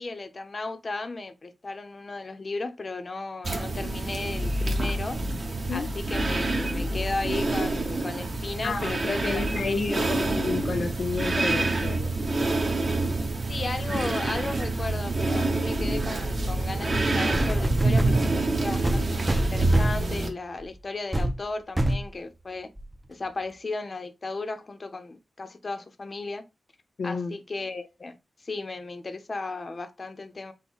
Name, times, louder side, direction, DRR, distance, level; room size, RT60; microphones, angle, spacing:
voice 1, 0.0-5.2 5.7-10.0 13.5-22.7 23.1-26.4 27.0-30.5, left 3 dB, 40° left, 0.6 m, -35 dB
sound 1, 3.4-20.3, right 2 dB, 45° right, 1.1 m, -27 dB
voice 2, 8.6-12.2 27.0-27.3, left 4 dB, 80° left, 0.6 m, -31 dB
sound 2, 17.3-18.2 18.8-20.1 20.6-20.8 21.1-21.4 21.8-22.1 22.8-22.9, right 1 dB, 10° right, 0.5 m, -25 dB
5.4 x 2.1 x 4.5 m
wide cardioid pair, 160°, 0 cm